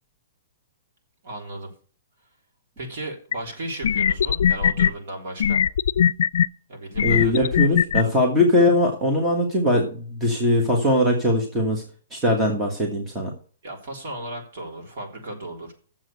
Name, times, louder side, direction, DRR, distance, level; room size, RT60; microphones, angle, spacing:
voice 1, 1.2-1.7 2.8-5.6 6.7-7.5 8.0-8.1 13.6-15.7, right 1 dB, 50° right, 1 dB, 3.6 m, -35 dB
sound 1, 3.3-3.4 3.8-4.9 5.4-6.5 7.0-8.0, left 9 dB, 70° left, 0.4 m, -19 dB
voice 2, 7.0-11.8 12.1-13.3, left 1 dB, 10° right, 0 dB, 1.5 m, -21 dB
7.5 x 7.3 x 8.1 m, 0.42 s
hypercardioid pair, 175°, 0 cm